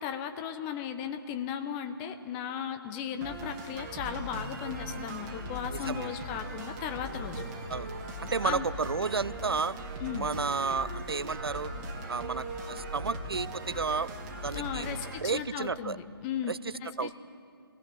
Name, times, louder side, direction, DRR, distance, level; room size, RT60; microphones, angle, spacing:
voice 1, 0.0-7.4 8.4-8.7 10.0-10.3 14.5-16.5 16.8-17.1, left 8 dB, 15° left, 7 dB, 0.8 m, -36 dB
sound 1, 3.2-15.2, right 1 dB, 20° right, 2.1 m, -39 dB
voice 2, 5.7-6.1 7.7-7.9 8.2-9.8 10.1-11.7 12.1-14.1 14.4-16.0 16.5-16.7 17.0-17.1, right 4 dB, 70° right, 19 dB, 0.4 m, -32 dB
24.0 x 18.0 x 6.6 m, 2.5 s
figure-of-eight pair, 140°, 13 cm